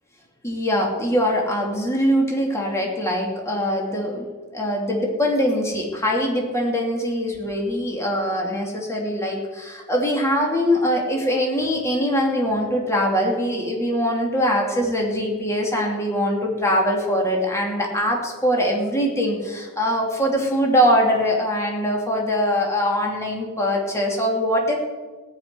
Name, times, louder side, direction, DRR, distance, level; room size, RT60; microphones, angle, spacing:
voice 1, 0.4-4.3 4.5-24.8, equal, 15° left, -1 dB, 2.8 m, -22 dB
18.0 x 6.1 x 9.7 m, 1.3 s
head